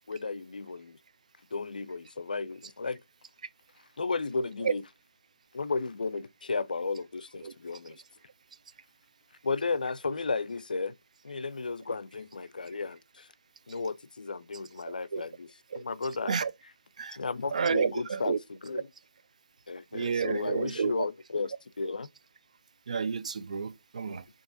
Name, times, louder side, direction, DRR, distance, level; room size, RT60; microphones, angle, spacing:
voice 1, 0.1-1.0 1.5-3.0 4.0-4.8 5.5-8.0 9.4-10.9 11.2-13.3 13.7-15.5 15.7-16.3 17.1-18.9 19.7-22.1, left 4 dB, 80° left, 0.4 m, -34 dB
voice 2, 14.9-15.2 15.7-15.8 16.3-16.5 17.0-17.2 17.5-18.4 19.9-20.9 22.9-24.2, right 6 dB, 55° right, 0.3 m, -30 dB
4.6 x 2.8 x 2.5 m
figure-of-eight pair, 155°, 5 cm